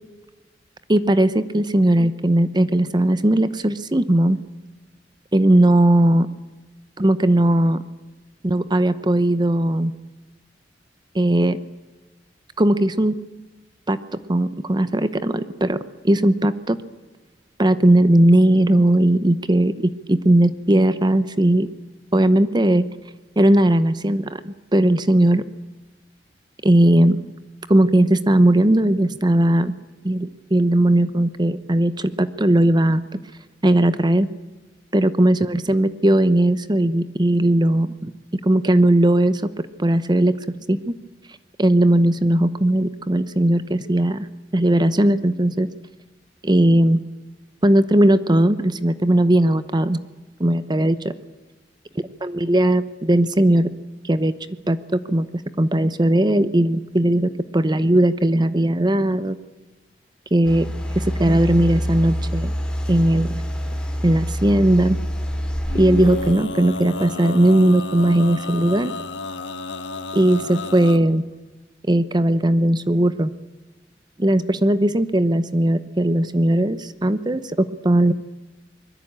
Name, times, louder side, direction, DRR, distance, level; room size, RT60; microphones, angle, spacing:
voice 1, 0.9-4.4 5.3-6.3 7.0-7.8 8.4-9.9 11.1-11.6 12.6-13.1 13.9-14.0 14.3-15.8 16.0-16.8 17.6-21.7 22.1-22.9 23.4-25.4 26.6-27.2 27.7-29.7 30.0-33.2 33.6-34.3 34.9-38.1 38.4-39.4 39.8-40.9 41.6-44.3 44.5-45.7 46.4-47.0 47.6-50.0 50.4-51.1 52.2-53.7 54.0-54.3 54.7-55.3 55.6-59.4 60.3-60.7 60.9-62.5 62.9-63.4 64.0-65.0 65.7-68.9 70.1-71.2 71.9-73.3 74.2-78.1, right 1 dB, 25° right, 13 dB, 0.8 m, -18 dB
sound 1, 60.4-66.3, equal, 5° left, 4.0 m, -26 dB
Male singing, 65.7-71.0, left 3 dB, 85° left, 1.6 m, -32 dB
24.5 x 21.5 x 8.8 m, 1.2 s
head